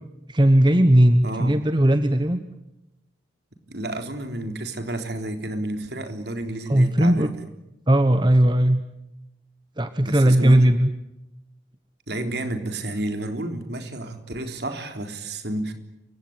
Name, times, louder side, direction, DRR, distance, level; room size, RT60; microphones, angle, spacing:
voice 1, 0.3-2.4 6.7-7.3 7.9-8.8 9.8-10.9, right 1 dB, 25° right, 9 dB, 1.1 m, -17 dB
voice 2, 1.2-1.6 3.7-7.3 10.0-10.7 12.1-15.7, right 1 dB, 60° right, 6 dB, 3.7 m, -30 dB
29.5 x 17.0 x 9.7 m, 0.90 s
head